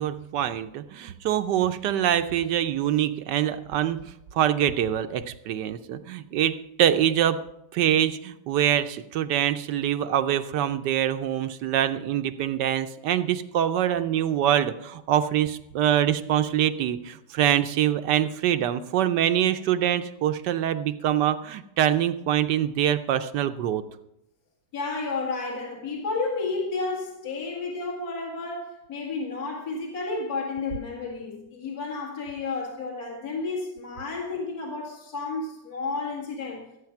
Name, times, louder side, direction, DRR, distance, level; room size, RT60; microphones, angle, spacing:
voice 1, 0.0-7.4 7.7-23.8, right 10 dB, 75° right, 1.2 m, -24 dB
voice 2, 24.7-36.6, left 3 dB, 55° left, 2.4 m, -31 dB
15.0 x 8.6 x 5.8 m
omnidirectional pair, 2.0 m